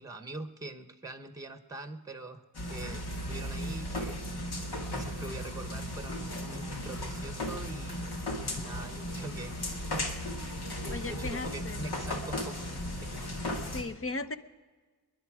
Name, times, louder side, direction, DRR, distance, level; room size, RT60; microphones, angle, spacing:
voice 1, 0.0-2.4 2.7-4.2 4.9-8.0 8.4-9.8 10.8-12.7 13.0-13.3, right 2 dB, 10° right, 9 dB, 1.0 m, -43 dB
sound 1, 2.5-13.8, left 1 dB, 70° left, 2.2 m, -36 dB
voice 2, 10.9-11.9 13.7-14.4, left 3 dB, 35° left, 8 dB, 0.9 m, -36 dB
21.5 x 11.0 x 4.9 m, 1.4 s
cardioid pair, 60°, 40 cm